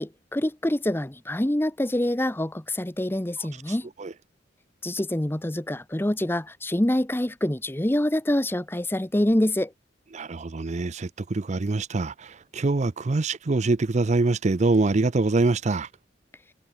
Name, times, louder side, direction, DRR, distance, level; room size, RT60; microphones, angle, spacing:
voice 1, 0.0-3.9 4.8-9.7, left 1 dB, 10° left, 0.7 m, -26 dB
voice 2, 3.4-4.1 10.1-15.9, right 3 dB, 35° right, 0.5 m, -25 dB
head